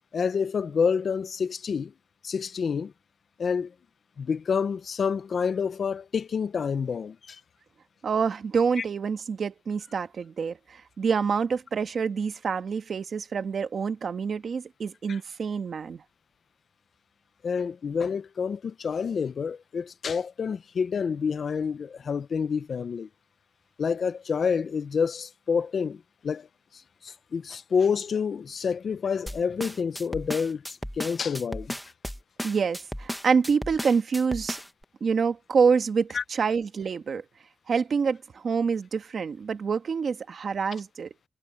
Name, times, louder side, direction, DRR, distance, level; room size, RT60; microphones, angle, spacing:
voice 1, 0.1-1.9 2.2-2.9 3.4-3.7 4.2-7.4 8.8-8.9 15.1-15.2 17.4-23.1 23.8-26.5 27.0-31.7 36.1-36.2, left 6 dB, 65° left, 0.5 m, -28 dB
voice 2, 8.0-16.0 32.4-34.6 35.0-37.2 37.7-41.1, right 5 dB, 65° right, 1.3 m, -27 dB
sound 1, 29.3-34.8, equal, ahead, 1.1 m, -35 dB
wide cardioid pair, 170°, 0 cm